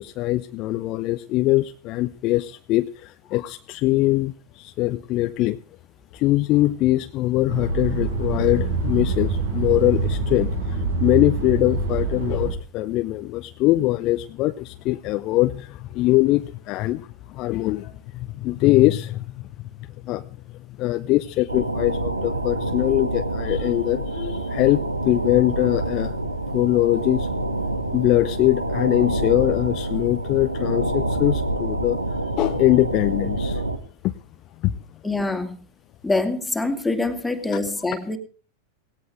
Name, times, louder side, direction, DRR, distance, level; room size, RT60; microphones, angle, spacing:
voice 1, 0.0-5.6 6.1-19.7 20.0-20.3 20.7-26.1 26.5-27.3 27.9-32.0 32.4-33.6 34.0-34.1 34.6-34.8, left 17 dB, 40° left, 10 dB, 0.7 m, -22 dB
sound 1, 7.5-12.5, right 4 dB, 65° right, 5.9 m, -25 dB
sound 2, 21.5-33.8, right 2 dB, 80° right, 1.7 m, -27 dB
voice 2, 35.0-35.6 36.0-38.2, left 2 dB, 5° left, 6 dB, 2.4 m, -25 dB
18.5 x 17.0 x 3.3 m, 0.36 s
figure-of-eight pair, 90°, 0 cm